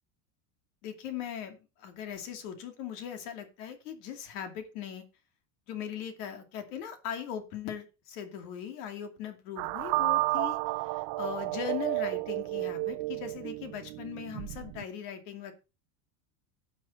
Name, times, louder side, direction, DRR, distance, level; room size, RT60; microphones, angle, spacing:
voice 1, 0.8-5.0 5.7-15.5, left 9 dB, 70° left, 7 dB, 2.7 m, -39 dB
sound 1, 9.6-14.8, right 22 dB, 45° right, 0.5 m, -32 dB
13.5 x 7.5 x 4.2 m, 0.31 s
supercardioid pair, 155°, 46 cm